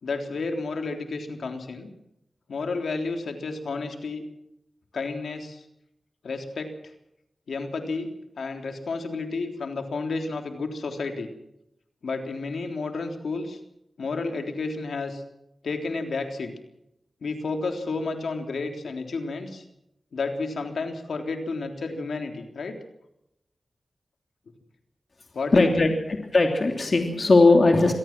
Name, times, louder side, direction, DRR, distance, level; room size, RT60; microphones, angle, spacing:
voice 1, 0.0-1.9 2.5-4.2 4.9-5.6 6.2-6.7 7.5-8.1 8.4-11.3 12.0-13.6 14.0-15.2 15.6-16.5 17.2-19.6 20.1-22.8 25.3-25.9, left 3 dB, 85° left, 4 dB, 3.6 m, -31 dB
voice 2, 25.5-27.9, left 3 dB, 55° left, 3 dB, 3.1 m, -19 dB
25.5 x 18.0 x 6.1 m, 0.82 s
cardioid pair, 50°, 0 cm